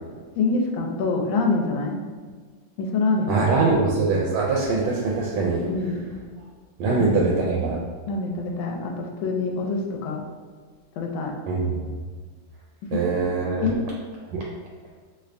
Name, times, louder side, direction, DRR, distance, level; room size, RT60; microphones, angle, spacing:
voice 1, 0.4-2.0 2.8-3.6 5.7-6.0 6.9-7.3 8.1-10.2 11.0-11.3 12.9-13.0 13.6-13.8, left 3 dB, 80° left, 1 dB, 1.3 m, -25 dB
voice 2, 3.3-5.6 6.8-7.8 11.5-11.9 12.9-13.7 14.3-14.4, right 3 dB, 80° right, -2 dB, 1.4 m, -23 dB
3.3 x 3.2 x 2.5 m, 1.5 s
omnidirectional pair, 2.2 m